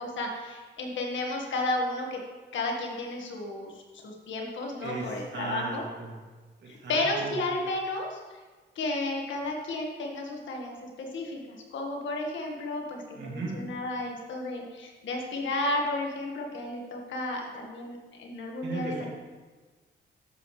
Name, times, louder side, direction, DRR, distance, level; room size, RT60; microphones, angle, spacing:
voice 1, 0.0-2.2 2.5-5.8 6.7-8.2 8.7-19.1, left 2 dB, 70° left, 1 dB, 1.7 m, -33 dB
voice 2, 4.8-6.2 6.8-7.4 13.2-13.5 18.6-19.1, right 3 dB, 60° right, -2 dB, 2.6 m, -36 dB
11.0 x 7.6 x 3.3 m, 1.3 s
cardioid pair, 85°, 20 cm